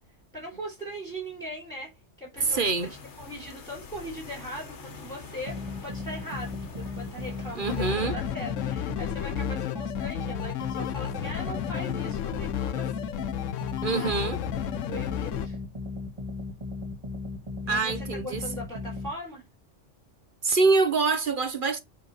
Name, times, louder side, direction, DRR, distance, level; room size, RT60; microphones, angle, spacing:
voice 1, 0.3-1.9 2.2-2.6 3.2-14.3 14.9-15.6 17.6-19.4, equal, 5° left, 3.5 m, -40 dB
sound 1, 2.4-7.9, left 5 dB, 65° left, 1.6 m, -45 dB
voice 2, 2.4-2.9 7.5-8.2 13.8-14.4 17.7-18.4 20.4-21.8, right 4 dB, 50° right, 0.9 m, -25 dB
sound 2, 5.5-19.1, left 3 dB, 20° right, 1.9 m, -37 dB
sound 3, 7.7-15.5, left 11 dB, 85° left, 1.0 m, -32 dB
8.2 x 4.1 x 4.3 m
omnidirectional pair, 1.3 m